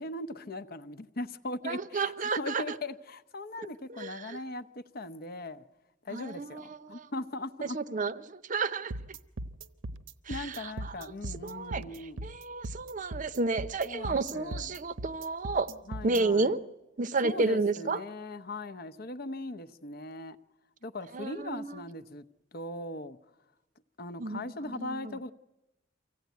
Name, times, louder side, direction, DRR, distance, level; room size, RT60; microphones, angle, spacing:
voice 1, 0.0-5.6 6.0-7.8 10.3-12.2 13.8-14.7 15.9-16.6 17.2-20.4 20.8-22.2 22.5-23.2 24.0-25.3, left 2 dB, 50° left, 0.8 m, -39 dB
voice 2, 1.7-2.6 4.0-4.4 6.1-7.0 7.7-8.9 10.3-10.7 11.4-11.8 12.2-15.7 16.0-16.6 17.0-18.0 21.1-21.7 24.2-24.5 24.8-25.1, right 3 dB, 40° right, 0.7 m, -31 dB
sound 1, 8.9-16.2, right 1 dB, 85° right, 0.9 m, -39 dB
24.5 x 16.0 x 9.3 m
head